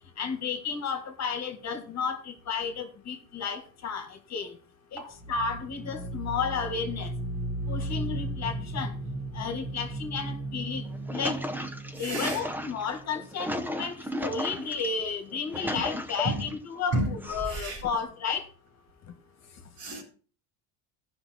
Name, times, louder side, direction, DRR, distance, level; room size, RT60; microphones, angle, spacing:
voice 1, 0.2-4.5 4.9-5.0 5.3-7.1 7.7-8.9 9.3-10.8 11.1-11.4 12.0-18.4, left 5 dB, 40° left, 1.6 m, -32 dB
sound 1, 5.1-13.8, right 1 dB, 25° right, 1.5 m, -36 dB
sound 2, 10.8-14.9 15.3-16.6 17.2-17.9, equal, 5° right, 0.5 m, -35 dB
voice 2, 12.0-12.4 16.2-16.4 16.9-17.2 17.5-17.8 19.8-20.0, right 1 dB, 60° right, 3.9 m, -31 dB
14.5 x 5.7 x 4.2 m
cardioid pair, 140°, 43 cm